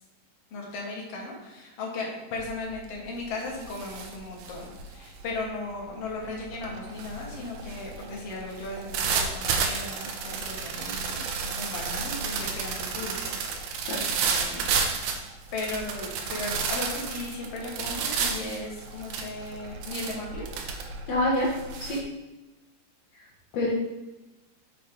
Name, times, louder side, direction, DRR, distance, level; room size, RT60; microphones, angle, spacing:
voice 1, 0.5-13.5 14.2-14.8 15.5-20.5, left 2 dB, 55° left, -2 dB, 1.7 m, -36 dB
sound 1, 2.4-2.7 3.1-22.0, right 5 dB, 80° right, 2.4 m, -32 dB
voice 2, 21.1-21.5 21.8-22.0 23.1-23.2 23.5-23.7, left 1 dB, 75° left, -5 dB, 1.5 m, -26 dB
6.6 x 6.3 x 4.6 m, 1.0 s
omnidirectional pair, 5.1 m